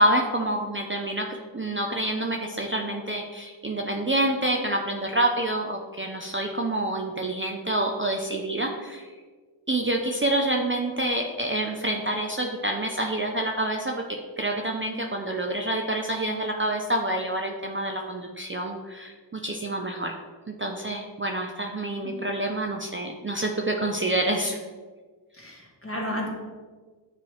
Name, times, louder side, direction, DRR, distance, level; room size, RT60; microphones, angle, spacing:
voice 1, 0.0-9.1 9.7-20.1 20.5-24.6, right 1 dB, 25° right, 1 dB, 0.5 m, -27 dB
voice 2, 25.4-26.3, left 1 dB, 30° left, -2 dB, 1.7 m, -32 dB
9.3 x 3.2 x 3.2 m, 1.4 s
wide cardioid pair, 55°, 45 cm